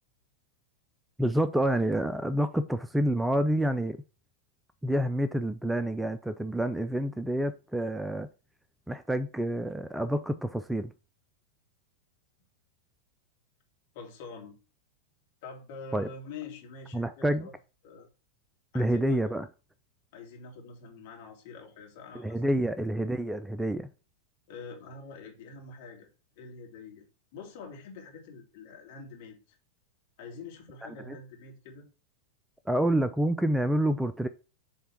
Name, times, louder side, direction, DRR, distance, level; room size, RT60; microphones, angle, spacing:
voice 1, 1.2-4.0 4.8-8.3 8.9-10.9 15.9-16.1 16.9-17.5 18.7-19.5 22.1-23.9 31.1-31.2 32.7-34.3, right 1 dB, 5° right, 0.4 m, -28 dB
voice 2, 13.9-14.5 15.4-17.5 17.8-18.1 18.7-19.2 20.1-22.6 24.5-26.1 26.4-27.1 27.3-29.4 30.2-31.9, left 4 dB, 50° left, 2.2 m, -45 dB
7.1 x 3.4 x 5.8 m
figure-of-eight pair, 90°, 0 cm